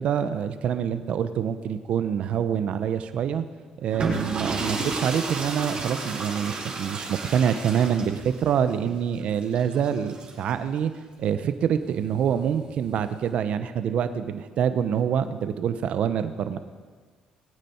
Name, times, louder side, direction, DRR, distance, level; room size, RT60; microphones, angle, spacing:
voice 1, 0.0-3.4 3.8-10.9 11.2-16.6, right 8 dB, 65° right, 11 dB, 0.8 m, -26 dB
sound 1, 3.8-10.5 11.8-13.2, right 3 dB, 50° right, 4.7 m, -32 dB
20.0 x 9.3 x 4.5 m, 1.5 s
supercardioid pair, 75°, 2 cm